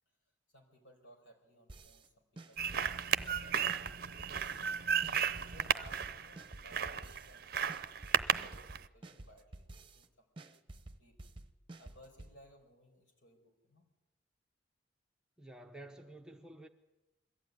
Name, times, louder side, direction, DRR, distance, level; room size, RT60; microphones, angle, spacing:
voice 1, 0.5-4.5 5.4-7.6 8.3-10.5 11.0-11.2 11.8-13.9, equal, 65° left, 5.1 m, -61 dB
sound 1, 1.7-2.1 2.4-4.7 5.0-7.4 7.7-10.1 10.4-12.3, right 2 dB, 25° right, 1.1 m, -51 dB
sound 2, 2.6-8.9, right 7 dB, 50° right, 0.7 m, -34 dB
voice 2, 15.4-16.7, right 1 dB, 5° right, 0.9 m, -51 dB
22.0 x 14.5 x 9.6 m
head